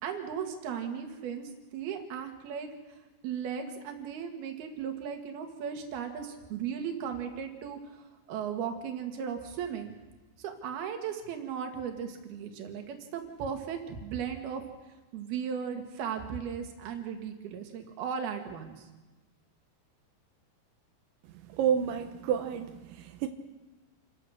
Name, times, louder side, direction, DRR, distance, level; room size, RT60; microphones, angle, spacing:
voice 1, 0.0-10.0 10.4-14.6 15.1-18.9, right 7 dB, 65° right, 4 dB, 3.6 m, -36 dB
voice 2, 21.4-23.3, right 8 dB, 90° right, 6 dB, 3.4 m, -30 dB
28.0 x 15.0 x 6.5 m, 1.1 s
omnidirectional pair, 5.2 m